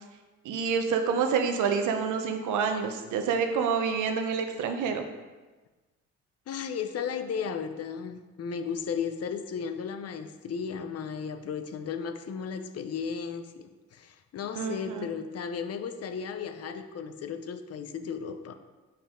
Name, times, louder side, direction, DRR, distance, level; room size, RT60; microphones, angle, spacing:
voice 1, 0.4-5.0 14.6-15.1, right 6 dB, 80° right, 6 dB, 0.8 m, -28 dB
voice 2, 6.5-18.6, left 6 dB, 55° left, 8 dB, 0.6 m, -35 dB
6.9 x 5.1 x 3.7 m, 1.2 s
cardioid pair, 90°, 30 cm